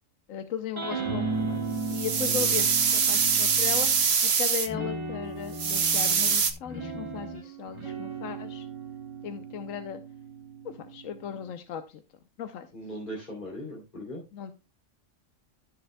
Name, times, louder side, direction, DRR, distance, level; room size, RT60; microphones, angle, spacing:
voice 1, 0.3-3.9 4.2-8.7 9.2-10.0 10.6-12.0 12.4-12.7 14.3-14.5, left 8 dB, 80° left, 9 dB, 1.1 m, -37 dB
sound 1, 0.8-4.1 4.7-11.4, right 3 dB, 20° right, 2.3 m, -36 dB
sound 2, 1.8-4.7 5.5-6.5, right 6 dB, 55° right, 1.2 m, -24 dB
voice 2, 12.7-14.2, equal, 40° left, -4 dB, 3.1 m, -39 dB
14.5 x 6.6 x 2.2 m, 0.27 s
omnidirectional pair, 1.4 m